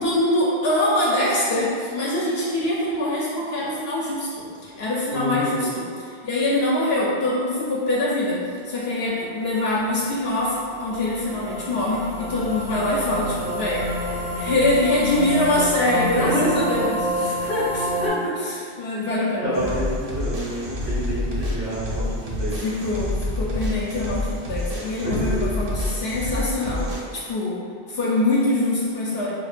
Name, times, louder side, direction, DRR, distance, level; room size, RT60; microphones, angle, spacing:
voice 1, 0.0-19.7 22.6-27.6 27.9-29.3, left 1 dB, 70° left, -6 dB, 0.8 m, -24 dB
voice 2, 5.1-5.7 16.1-16.9 19.4-22.5 25.0-25.5, right 1 dB, 75° right, -8 dB, 1.4 m, -27 dB
sound 1, 9.6-18.1, equal, 30° left, 0.5 m, -29 dB
sound 2, 19.5-27.0, left 1 dB, 45° right, 0.5 m, -28 dB
4.8 x 2.1 x 2.4 m, 2.3 s
omnidirectional pair, 1.1 m